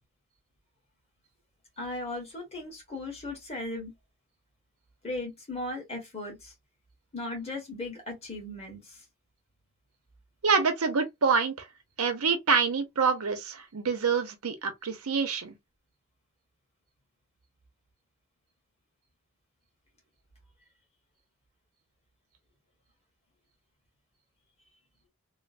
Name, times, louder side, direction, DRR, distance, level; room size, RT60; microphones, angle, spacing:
voice 1, 1.8-3.9 5.0-6.5 7.1-9.0, left 2 dB, 30° left, 1.3 m, -37 dB
voice 2, 10.4-11.7 12.0-15.6, right 5 dB, 90° right, 0.7 m, -26 dB
3.0 x 2.0 x 2.4 m
head